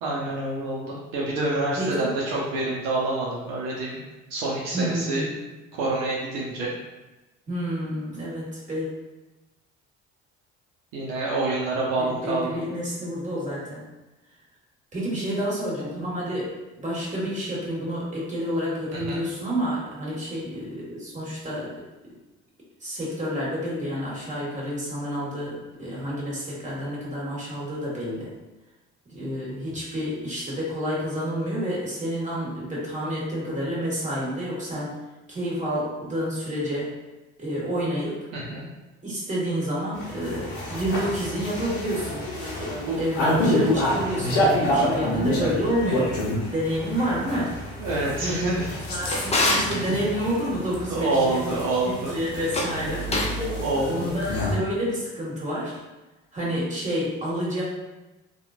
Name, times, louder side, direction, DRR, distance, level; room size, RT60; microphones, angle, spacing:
voice 1, 0.0-4.0 4.3-5.2 5.7-6.7 10.9-12.6 19.1-19.2 38.3-38.7 42.9-43.0 47.8-48.7 49.1-49.3 50.9-52.1 53.5-54.1, right 2 dB, 70° right, -5 dB, 0.7 m, -27 dB
voice 2, 1.8-2.1 4.7-5.4 7.5-8.9 12.0-13.9 14.9-16.5 16.8-21.7 22.8-28.3 29.1-35.0 35.3-36.9 37.4-38.2 39.0-42.3 42.6-47.6 48.1-48.4 48.9-51.4 51.7-53.5 53.9-55.8 56.3-57.6, equal, 20° right, -6 dB, 1.4 m, -29 dB
sound 1, 39.9-54.6, equal, 90° left, 0.7 m, -28 dB
Drawer open or close, 48.6-49.8 52.4-53.4, left 2 dB, 20° left, 0.6 m, -26 dB
2.9 x 2.4 x 2.4 m, 1.1 s
hypercardioid pair, 65°, 34 cm